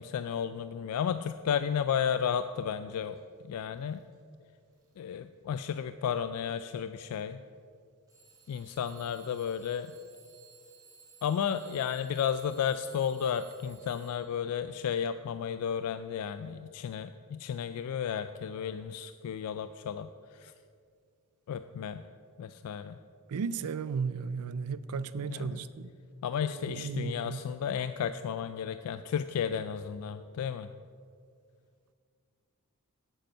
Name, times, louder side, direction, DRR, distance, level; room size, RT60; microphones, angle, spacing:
voice 1, 0.0-3.2 3.4-4.0 5.0-7.4 8.5-9.9 11.2-20.5 21.5-22.0 22.4-23.0 25.3-25.6 26.2-30.7, left 8 dB, 80° left, 11 dB, 0.3 m, -33 dB
Alarm / Clock, 3.0-3.2 3.7-4.2 4.7-5.1 6.0-6.1 8.1-14.5, right 5 dB, 15° right, 2.2 m, -58 dB
voice 2, 23.3-25.9 26.4-27.4, right 5 dB, 85° right, 15 dB, 0.4 m, -35 dB
8.7 x 8.0 x 5.5 m, 2.2 s
head